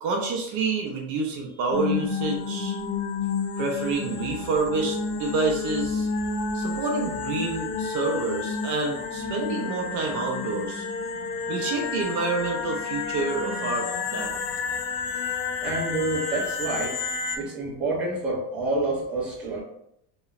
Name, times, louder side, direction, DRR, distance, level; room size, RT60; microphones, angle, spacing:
voice 1, 0.0-2.8 3.6-6.1 6.5-10.8 11.5-14.4, right 3 dB, 50° right, 1 dB, 0.5 m, -28 dB
sound 1, 1.7-17.4, left 5 dB, 80° left, 0.6 m, -30 dB
voice 2, 15.6-16.9 17.3-19.6, right 2 dB, 5° right, -8 dB, 0.5 m, -28 dB
2.9 x 2.0 x 2.3 m, 0.78 s
cardioid pair, 160°, 39 cm